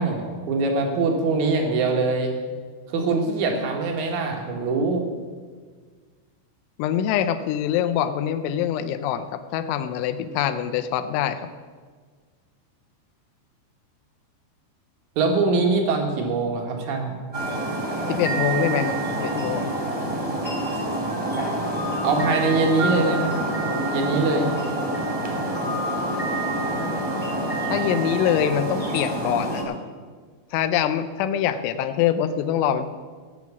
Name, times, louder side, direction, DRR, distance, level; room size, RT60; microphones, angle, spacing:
voice 1, 0.0-2.3 2.9-5.1 15.2-17.2 22.0-23.5 23.9-24.5, right 3 dB, 70° right, 2 dB, 1.8 m, -23 dB
voice 2, 6.8-11.5 18.1-19.7 27.7-29.8 30.5-33.0, left 9 dB, 80° left, 10 dB, 2.9 m, -24 dB
sound 1, 17.3-29.6, right 1 dB, 20° right, 0.8 m, -27 dB
17.0 x 5.9 x 8.2 m, 1.6 s
omnidirectional pair, 5.8 m